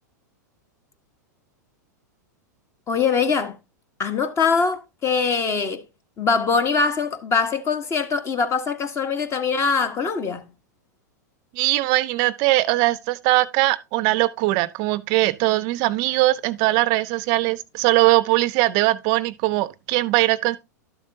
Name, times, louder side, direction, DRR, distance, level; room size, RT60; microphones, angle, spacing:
voice 1, 2.9-3.6 4.0-5.8 6.2-10.4, left 5 dB, 30° left, 1.3 m, -22 dB
voice 2, 11.5-20.6, right 19 dB, 50° right, 0.5 m, -20 dB
12.0 x 7.3 x 2.7 m
hypercardioid pair, 100°, 10 cm